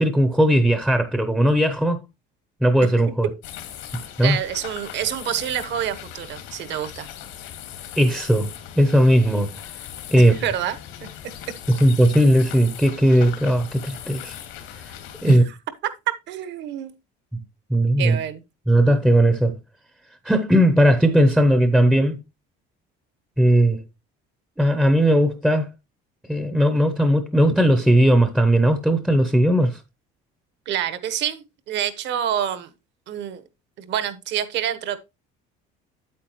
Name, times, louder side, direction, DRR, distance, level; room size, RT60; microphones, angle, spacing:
voice 1, 0.0-2.0 2.6-3.3 4.2-4.4 8.0-9.5 10.1-10.3 11.7-14.4 15.2-15.4 17.3-17.4 17.7-18.2 18.7-19.5 20.2-22.2 23.4-23.8 24.6-25.7 26.3-29.8, equal, 5° right, 0.6 m, -17 dB
sound 1, 3.4-15.4, left 10 dB, 90° left, 2.1 m, -39 dB
voice 2, 4.2-7.1 10.2-10.8 15.3-15.6 15.8-15.9 16.3-16.9 18.0-18.4 30.7-32.7 33.1-33.4 33.8-35.0, right 10 dB, 60° right, 1.2 m, -27 dB
8.5 x 8.4 x 3.0 m
cardioid pair, 135°, 21 cm